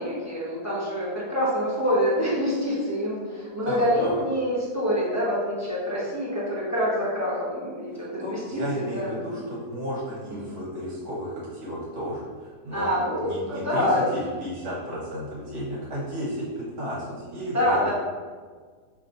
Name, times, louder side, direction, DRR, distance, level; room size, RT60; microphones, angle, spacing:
voice 1, 0.0-9.3 10.3-10.6 12.7-14.0 17.5-17.9, equal, 10° right, -8 dB, 1.0 m, -26 dB
voice 2, 3.7-4.2 7.9-12.9 13.2-13.9 14.1-17.9, equal, 70° right, -8 dB, 1.9 m, -33 dB
5.3 x 3.2 x 2.6 m, 1.5 s
omnidirectional pair, 1.8 m